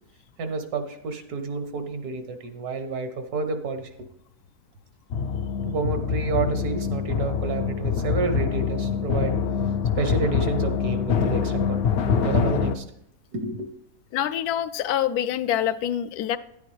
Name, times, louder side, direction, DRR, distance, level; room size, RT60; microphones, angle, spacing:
voice 1, 0.4-3.9 5.6-9.4 10.0-12.8 13.3-13.7, right 4 dB, 85° right, 7 dB, 1.6 m, -29 dB
sound 1, 5.1-12.8, left 6 dB, 65° left, 0.6 m, -25 dB
voice 2, 14.1-16.4, left 10 dB, 85° left, 13 dB, 1.1 m, -25 dB
10.5 x 9.4 x 3.2 m, 0.76 s
omnidirectional pair, 1.6 m